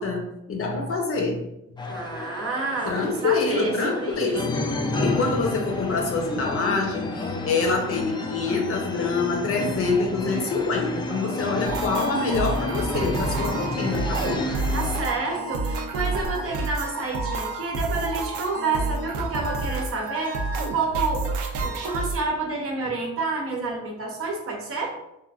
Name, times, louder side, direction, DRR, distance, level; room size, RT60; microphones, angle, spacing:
voice 1, 0.0-1.4 1.8-1.9 2.8-4.5 5.0-14.4, left 4 dB, 45° left, 2 dB, 0.7 m, -26 dB
sound 1, 1.8-15.0, left 2 dB, 15° left, 0.3 m, -31 dB
voice 2, 1.9-4.6 14.7-21.3 21.6-25.0, right 3 dB, 50° right, 0 dB, 0.7 m, -29 dB
sound 2, 11.7-22.2, right 3 dB, 80° right, 0.5 m, -29 dB
3.0 x 2.4 x 2.4 m, 0.85 s
cardioid pair, 90°, 30 cm